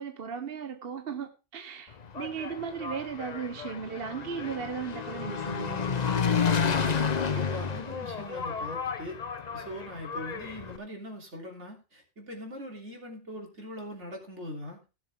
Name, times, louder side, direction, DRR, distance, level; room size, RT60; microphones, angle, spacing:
voice 1, 0.0-5.9, right 6 dB, 55° right, 1.1 m, -36 dB
Engine, 1.9-10.8, left 6 dB, 40° left, 0.8 m, -31 dB
voice 2, 6.8-9.2 9.5-14.8, equal, 75° right, 3.5 m, -41 dB
17.0 x 7.1 x 3.6 m
omnidirectional pair, 1.2 m